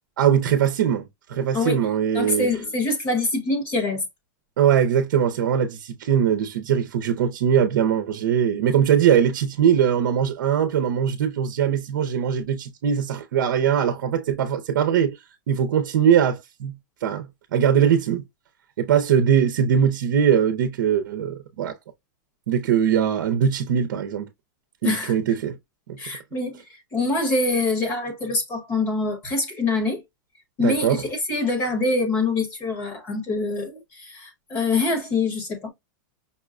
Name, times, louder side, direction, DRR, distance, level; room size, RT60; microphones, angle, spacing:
voice 1, 0.2-2.5 4.6-15.2 15.5-16.8 17.0-17.3 17.5-18.2 18.8-21.8 22.5-24.3 24.8-25.5 25.9-26.0 30.6-31.0, right 8 dB, 70° right, 0.7 m, -21 dB
voice 2, 2.1-4.0 24.8-25.1 26.0-26.6 26.9-30.0 30.6-35.7, left 3 dB, 20° left, 1.2 m, -25 dB
5.5 x 2.2 x 2.4 m
supercardioid pair, 175°, 10 cm